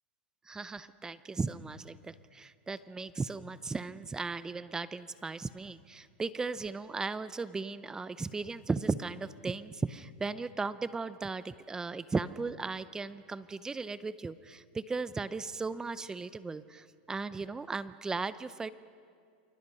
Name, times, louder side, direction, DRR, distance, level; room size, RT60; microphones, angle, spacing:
voice 1, 0.5-18.7, right 4 dB, 10° right, 15 dB, 0.6 m, -36 dB
29.0 x 23.0 x 5.5 m, 2.2 s
hypercardioid pair, 130°, 6 cm